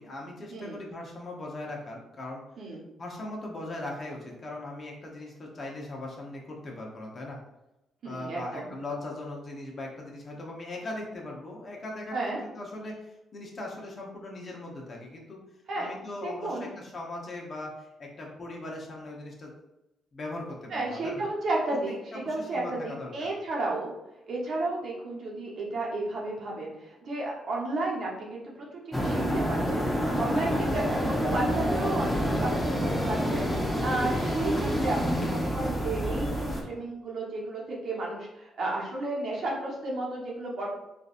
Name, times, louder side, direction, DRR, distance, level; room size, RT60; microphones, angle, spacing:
voice 1, 0.0-2.4 3.0-7.4 8.0-15.4 15.8-19.5 20.1-21.2 22.1-23.3 30.0-30.9, left 2 dB, 40° left, -1 dB, 0.9 m, -39 dB
voice 2, 8.0-8.7 12.1-12.4 15.7-15.9 16.2-16.7 20.7-23.9 24.3-29.9 30.2-40.7, right 2 dB, 60° right, -3 dB, 1.0 m, -33 dB
sound 1, 28.9-36.6, equal, ahead, 0.8 m, -28 dB
3.8 x 2.6 x 2.5 m, 0.95 s
cardioid pair, 90°, 0 cm